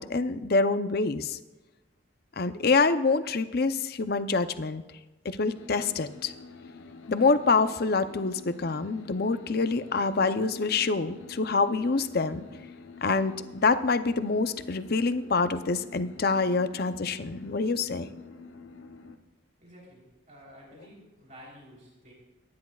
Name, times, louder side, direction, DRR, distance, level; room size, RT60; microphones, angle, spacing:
voice 1, 0.0-1.4 2.4-4.8 5.2-6.3 7.1-12.5 13.0-18.1, left 4 dB, 50° left, 11 dB, 0.6 m, -26 dB
sound 1, 5.5-19.2, left 3 dB, 80° left, 0.9 m, -47 dB
voice 2, 19.6-22.1, equal, 40° right, -3 dB, 3.5 m, -51 dB
25.0 x 10.5 x 2.4 m, 1.1 s
head